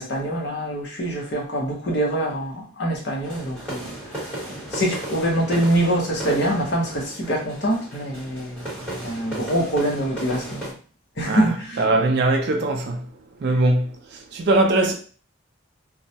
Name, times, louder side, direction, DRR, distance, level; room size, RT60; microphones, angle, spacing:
voice 1, 0.0-3.9 4.2-4.4 4.7-10.7 11.2-11.8 13.5-13.6, right 1 dB, 55° left, 0.7 m, -25 dB
sound 1, 3.2-10.7, right 1 dB, 5° left, 1.1 m, -35 dB
voice 2, 11.8-13.1 13.4-14.9, right 2 dB, 55° right, 0.4 m, -21 dB
2.2 x 2.0 x 2.7 m
head